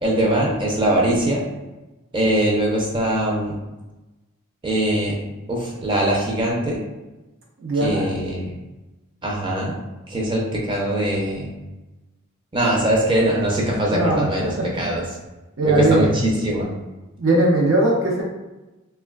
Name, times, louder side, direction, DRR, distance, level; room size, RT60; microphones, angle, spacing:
voice 1, 0.0-1.5 2.1-3.6 4.6-5.2 5.5-6.8 7.7-8.5 9.2-9.8 10.1-11.5 12.5-15.0 15.6-16.7, right 1 dB, 25° right, -3 dB, 0.5 m, -22 dB
voice 2, 7.6-8.1 13.9-14.9 15.6-16.1 17.2-18.2, right 2 dB, 70° right, -3 dB, 0.6 m, -20 dB
3.0 x 2.2 x 2.3 m, 1.1 s
head